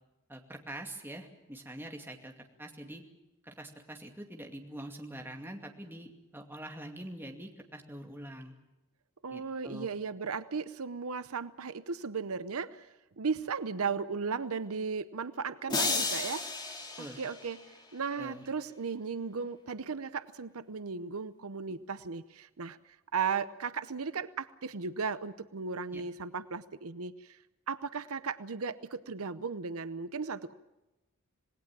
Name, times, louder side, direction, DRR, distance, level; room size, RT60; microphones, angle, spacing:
voice 1, 0.3-2.3 2.6-3.0 3.4-8.6 9.3-9.9 17.0-17.2 18.2-18.5 25.9-26.0, right 1 dB, 10° right, 2 dB, 2.4 m, -44 dB
voice 2, 9.2-12.9 13.2-16.4 17.0-17.6 17.9-22.8 23.1-27.4 27.7-30.5, right 5 dB, 80° right, 13 dB, 0.8 m, -36 dB
sound 1, 15.7-18.0, left 3 dB, 20° left, 2.5 m, -33 dB
26.5 x 19.5 x 7.5 m, 1.0 s
head